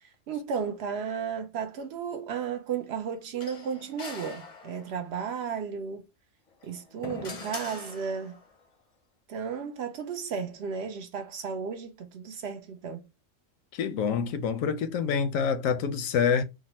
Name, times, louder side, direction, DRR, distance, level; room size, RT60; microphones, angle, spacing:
voice 1, 0.0-6.0 6.6-8.4 9.3-13.1, right 6 dB, 65° right, 0.7 m, -34 dB
sound 1, 3.4-5.1 6.5-8.5, left 3 dB, 40° left, 0.6 m, -42 dB
voice 2, 13.7-16.4, left 6 dB, 85° left, 1.0 m, -26 dB
3.7 x 2.1 x 2.8 m
omnidirectional pair, 1.3 m